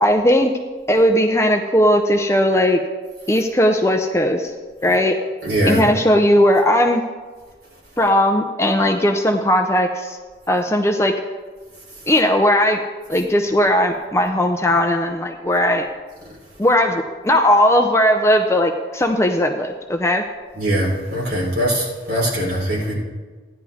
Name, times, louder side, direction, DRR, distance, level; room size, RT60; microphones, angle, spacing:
voice 1, 0.0-0.5 0.9-2.8 3.3-4.5 4.8-5.2 5.6-7.0 8.0-10.2 10.5-11.2 12.1-12.8 13.1-15.9 16.6-20.3, left 1 dB, 15° left, 4 dB, 0.6 m, -17 dB
voice 2, 5.4-5.8 20.6-22.9, right 1 dB, 60° right, -5 dB, 4.4 m, -21 dB
15.5 x 10.5 x 3.6 m, 1.4 s
head